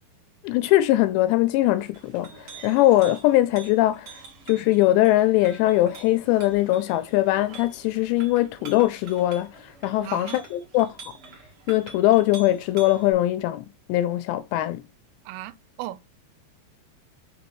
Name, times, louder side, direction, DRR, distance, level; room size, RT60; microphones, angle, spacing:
voice 1, 0.4-4.1 4.5-10.9 11.7-14.8, left 15 dB, 85° left, 2.6 m, -21 dB
Chink clink, 1.8-13.1, right 5 dB, 65° right, 1.3 m, -46 dB
voice 2, 10.0-10.4 15.3-16.1, right 15 dB, 85° right, 2.8 m, -36 dB
6.0 x 5.2 x 3.0 m
omnidirectional pair, 5.3 m